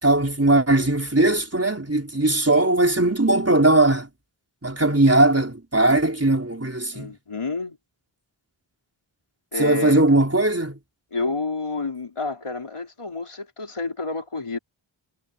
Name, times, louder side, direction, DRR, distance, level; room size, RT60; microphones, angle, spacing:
voice 1, 0.0-4.1 4.6-7.1 9.6-10.8, right 2 dB, 30° right, 4.2 m, -19 dB
voice 2, 6.9-7.8 9.5-10.0 11.1-14.6, left 3 dB, 85° left, 4.0 m, -29 dB
wide cardioid pair, 40°, 50 cm